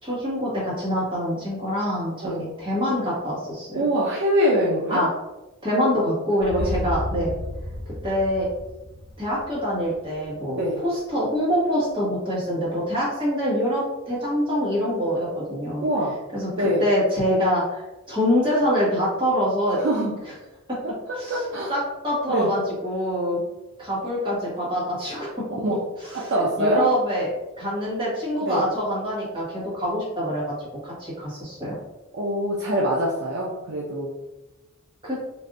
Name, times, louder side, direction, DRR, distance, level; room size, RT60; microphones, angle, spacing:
voice 1, 0.0-3.8 4.9-5.1 5.6-7.3 7.8-8.5 9.2-15.8 16.3-17.8 18.1-19.8 21.1-21.4 21.7-23.4 23.8-25.3 26.0-27.3 27.6-30.5 30.8-31.7 35.0-35.2, equal, 20° right, -8 dB, 1.3 m, -25 dB
voice 2, 3.8-5.1 6.6-6.8 10.6-10.8 15.8-16.2 16.5-16.8 19.8-20.2 21.1-21.7 22.3-22.5 25.6-25.8 26.1-26.9 28.4-28.6 32.1-34.1, equal, 55° right, -4 dB, 0.5 m, -24 dB
sound 1, 6.4-10.4, left 1 dB, 50° left, 1.0 m, -33 dB
3.3 x 2.5 x 2.5 m, 1.0 s
head